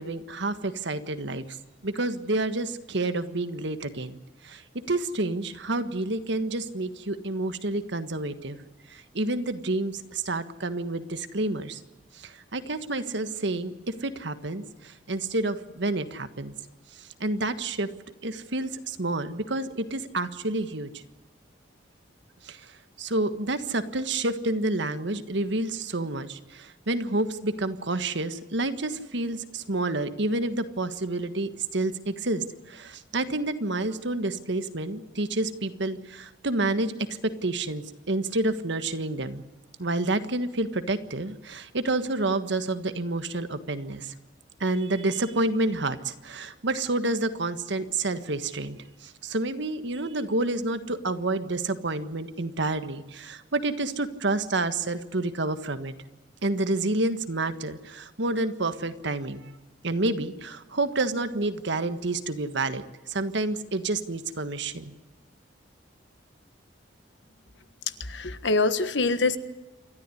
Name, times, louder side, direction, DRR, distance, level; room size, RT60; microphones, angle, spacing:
voice 1, 0.0-1.4 1.8-4.2 4.4-8.6 8.9-11.8 12.2-13.7 14.0-16.5 17.2-17.9 18.2-20.9 22.4-22.6 23.0-39.4 39.8-44.1 44.6-48.8 49.0-55.9 56.4-59.5 59.8-62.8 63.1-64.9, right 2 dB, 70° right, 10 dB, 1.5 m, -29 dB
voice 2, 68.0-69.4, left 3 dB, 70° left, 11 dB, 1.5 m, -24 dB
28.0 x 13.0 x 9.9 m, 1.1 s
head